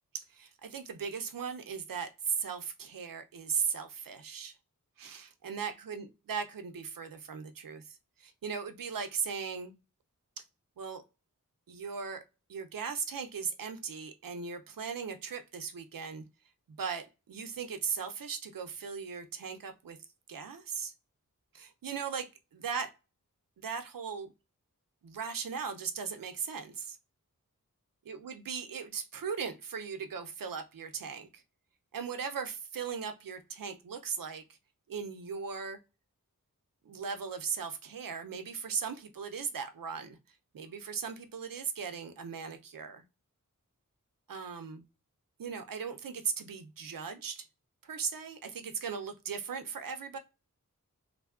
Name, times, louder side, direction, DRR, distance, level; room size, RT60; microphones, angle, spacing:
voice 1, 0.1-4.5 5.0-9.7 10.4-10.5 10.8-11.0 11.7-12.2 12.5-16.2 16.8-20.0 20.3-20.9 21.5-22.9 23.6-24.3 25.0-27.0 28.1-31.4 31.9-34.4 34.9-35.8 36.8-40.2 40.5-43.0 44.3-44.8 45.4-47.5 47.8-50.2, right 6 dB, 90° right, 0.6 m, -38 dB
3.3 x 2.1 x 2.3 m
wide cardioid pair, 80°, 33 cm